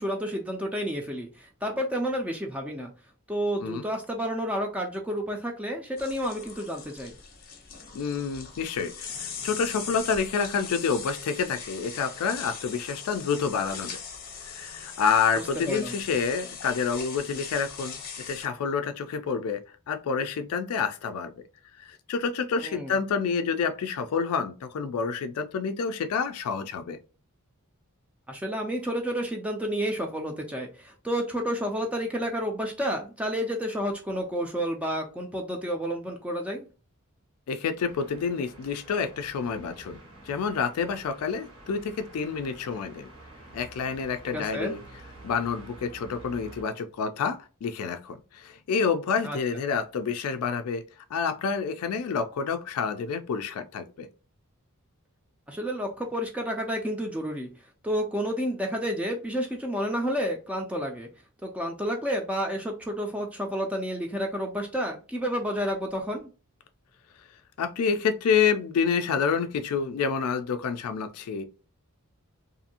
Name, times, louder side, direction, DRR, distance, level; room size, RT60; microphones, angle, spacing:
voice 1, 0.0-2.9 3.3-7.1 15.7-15.9 22.6-22.9 28.3-36.7 44.3-44.7 49.2-49.4 55.5-57.5 57.8-61.1 61.4-66.3, equal, 5° right, 0.3 m, -30 dB
sound 1, 6.0-18.5, left 6 dB, 40° left, 0.6 m, -40 dB
voice 2, 7.9-14.0 14.4-18.0 18.3-19.6 19.9-21.3 21.8-27.0 37.5-40.0 40.2-43.1 43.5-44.8 45.2-50.8 51.1-54.1 67.6-71.4, left 6 dB, 80° left, 0.3 m, -28 dB
sound 2, 37.8-46.6, right 2 dB, 75° right, 1.1 m, -49 dB
2.6 x 2.5 x 2.7 m
head